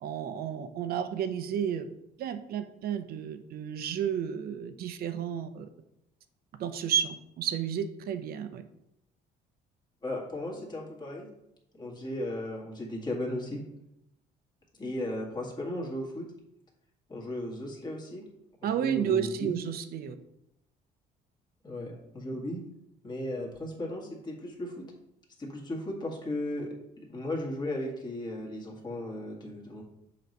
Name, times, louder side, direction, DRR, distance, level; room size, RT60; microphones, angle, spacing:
voice 1, 0.0-1.9 2.2-5.7 6.6-8.6 18.6-20.2, right 8 dB, 65° right, 10 dB, 0.7 m, -32 dB
voice 2, 10.0-11.3 11.7-13.6 14.8-16.3 17.1-18.2 18.8-19.6 21.6-22.6 23.0-24.8 25.4-26.7 27.1-29.8, left 1 dB, 25° left, -2 dB, 1.8 m, -36 dB
6.8 x 3.1 x 5.3 m, 0.85 s
cardioid pair, 110°, 17 cm